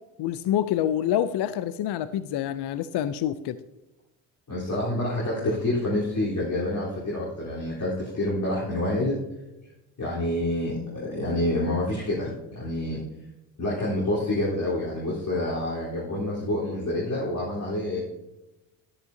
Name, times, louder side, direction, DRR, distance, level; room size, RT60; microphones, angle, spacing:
voice 1, 0.2-3.6, left 11 dB, 60° left, 13 dB, 0.6 m, -27 dB
voice 2, 4.5-9.2 10.0-13.0 13.6-18.0, left 1 dB, 40° left, -7 dB, 3.9 m, -27 dB
12.0 x 10.5 x 2.8 m, 0.99 s
supercardioid pair, 70°, 45 cm